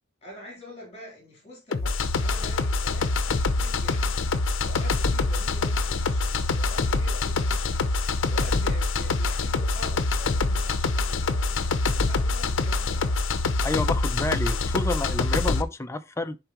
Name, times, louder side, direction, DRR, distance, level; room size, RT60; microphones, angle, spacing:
voice 1, 0.2-13.2, left 1 dB, 30° left, 3.4 m, -45 dB
sound 1, 1.7-15.6, left 3 dB, 70° left, 0.7 m, -25 dB
voice 2, 13.6-16.4, left 2 dB, 15° left, 0.4 m, -29 dB
10.5 x 4.5 x 2.9 m
head